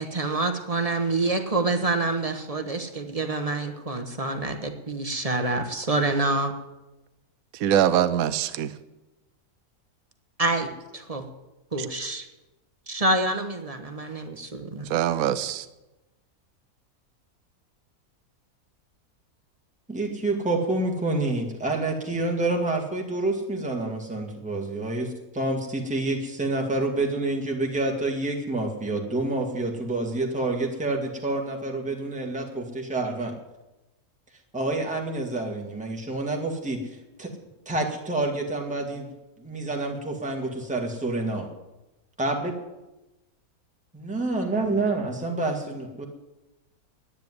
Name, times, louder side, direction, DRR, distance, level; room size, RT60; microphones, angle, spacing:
voice 1, 0.0-6.5 10.4-11.2 11.7-12.3 12.9-14.9, right 2 dB, 25° right, 7 dB, 1.1 m, -27 dB
voice 2, 7.5-8.8 14.9-15.7, right 10 dB, 75° right, 12 dB, 1.1 m, -23 dB
voice 3, 19.9-33.3 34.5-36.8 37.2-37.3 37.7-39.1 39.4-41.5 42.2-42.5 43.9-46.1, right 2 dB, 5° right, 1 dB, 1.7 m, -28 dB
10.5 x 9.9 x 9.5 m, 1.0 s
omnidirectional pair, 1.6 m